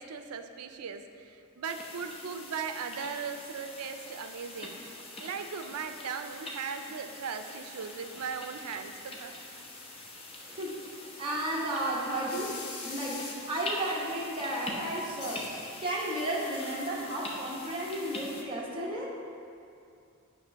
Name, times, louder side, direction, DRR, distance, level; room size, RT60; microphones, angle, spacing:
voice 1, 0.0-4.8 5.2-9.7, right 6 dB, 80° right, 8 dB, 0.5 m, -38 dB
sound 1, 1.6-18.4, left 2 dB, 25° left, 0.8 m, -44 dB
sound 2, 8.4-9.5 9.8-9.9 10.3-10.4 11.0-11.1 11.7-11.8 12.0-12.1 12.2-13.7 14.1-14.3 14.7-14.8 15.2-17.2, left 3 dB, 75° left, 1.0 m, -44 dB
voice 2, 10.5-10.8 11.2-15.5 15.8-19.1, right 1 dB, 25° right, -5 dB, 0.9 m, -33 dB
9.0 x 3.2 x 5.6 m, 2.5 s
head